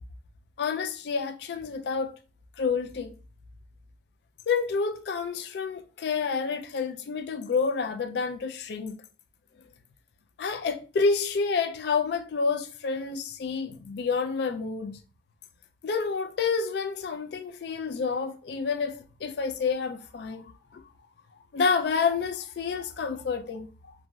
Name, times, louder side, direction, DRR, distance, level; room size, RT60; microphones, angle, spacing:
voice 1, 0.6-2.1 2.6-3.1 4.5-9.0 10.4-15.0 15.8-20.8 21.5-23.9, left 5 dB, 65° left, 0.3 m, -29 dB
3.0 x 2.5 x 2.2 m
head